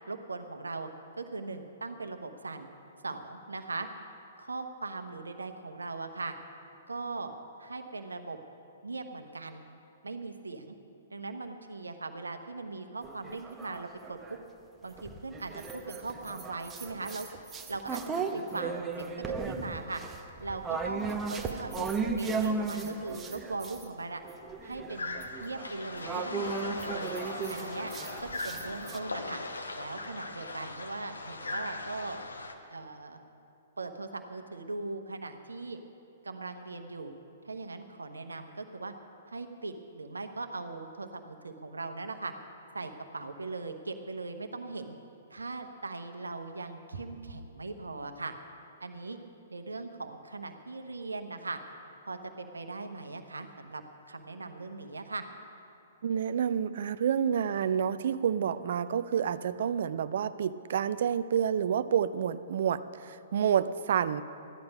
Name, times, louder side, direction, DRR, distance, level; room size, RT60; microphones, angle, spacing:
voice 1, 0.1-0.9 1.2-2.7 3.0-3.9 4.4-6.3 6.9-7.3 7.6-8.4 8.8-9.6 10.0-10.7 11.1-14.4 14.8-17.3 17.7-19.1 19.4-20.0 20.4-24.2 24.6-27.1 27.5-27.9 28.2-29.4 29.7-32.2 32.7-33.2 33.8-35.8 36.2-37.1 37.4-38.9 39.3-42.3 42.7-45.0 45.3-48.3 48.8-49.2 49.5-51.6 52.0-55.3, right 3 dB, 80° right, 7 dB, 1.0 m, -39 dB
sound 1, 13.0-14.4 15.0-23.9 24.2-29.0, right 4 dB, 15° right, 0.8 m, -36 dB
sound 2, 24.9-32.5, left 3 dB, 80° left, 1.0 m, -39 dB
voice 2, 56.0-64.2, right 8 dB, 55° right, 14 dB, 0.4 m, -29 dB
14.5 x 10.5 x 5.3 m, 2.7 s
figure-of-eight pair, 115°, 0 cm